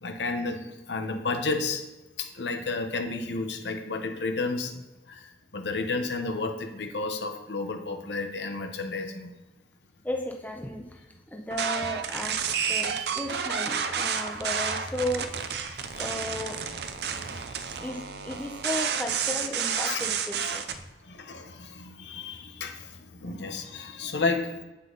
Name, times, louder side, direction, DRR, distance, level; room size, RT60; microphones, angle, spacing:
voice 1, 0.0-1.8 2.2-4.7 5.1-9.3 15.9-16.0 17.2-17.9 19.8-20.0 21.0-24.6, left 3 dB, 80° left, 5 dB, 0.9 m, -32 dB
voice 2, 10.0-11.0 11.3-12.4 12.7-15.3 16.0-16.6 17.2-17.3 17.8-20.7, left 1 dB, 10° left, 1 dB, 0.7 m, -34 dB
sound 1, 11.5-20.8, right 7 dB, 65° right, 0.6 m, -31 dB
8.1 x 5.6 x 3.9 m, 1.1 s
head